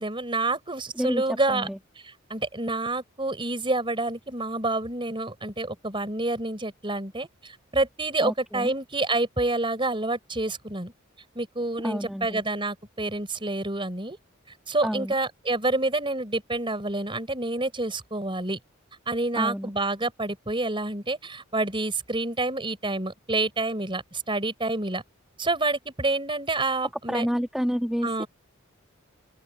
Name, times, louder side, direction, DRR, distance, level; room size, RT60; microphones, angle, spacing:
voice 1, 0.0-1.7 2.0-10.9 11.4-14.2 14.7-18.6 19.1-25.0 25.4-27.3 28.0-28.3, right 2 dB, 25° right, 5.1 m, -28 dB
voice 2, 1.5-1.8 8.2-8.7 11.8-12.4 14.8-15.1 19.4-19.7 27.1-28.2, equal, ahead, 1.6 m, -29 dB
open air
head